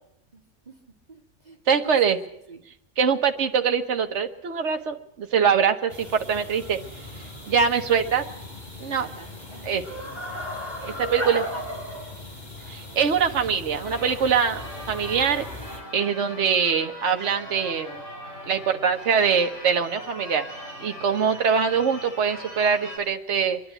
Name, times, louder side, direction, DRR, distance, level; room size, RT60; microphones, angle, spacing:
voice 1, 0.3-0.8 1.1-2.6 8.8-9.7 10.9-11.8, right 1 dB, 35° right, 2 dB, 2.0 m, -43 dB
voice 2, 1.7-2.2 3.0-6.8 7.4-8.2 8.8-9.1 9.7-9.8 10.8-11.4 12.7-15.5 15.9-18.0 18.5-20.4 20.8-23.6, right 6 dB, 65° right, 6 dB, 1.5 m, -23 dB
sound 1, 5.9-15.8, left 1 dB, 35° left, 4.7 m, -37 dB
Church bell / Car / Alarm, 13.8-23.0, equal, 75° left, 6.2 m, -40 dB
25.5 x 11.0 x 9.1 m, 0.77 s
omnidirectional pair, 1.3 m